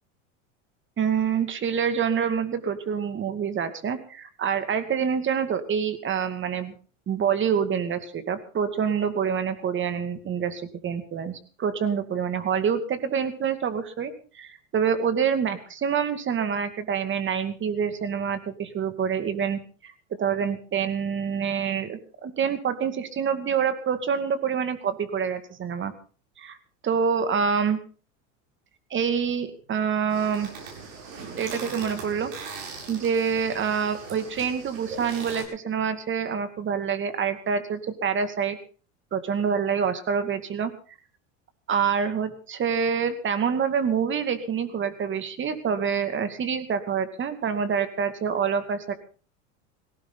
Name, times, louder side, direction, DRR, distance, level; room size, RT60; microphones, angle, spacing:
voice 1, 1.0-6.8 7.1-19.9 20.2-25.9 26.4-26.6 26.8-27.8 28.9-30.5 31.2-38.6 39.1-40.7 41.7-48.9, right 7 dB, 30° right, 10 dB, 2.4 m, -26 dB
sound 1, 30.1-35.4, right 5 dB, 80° right, 7.8 m, -40 dB
18.5 x 17.5 x 4.1 m, 0.40 s
hypercardioid pair, 105°, 38 cm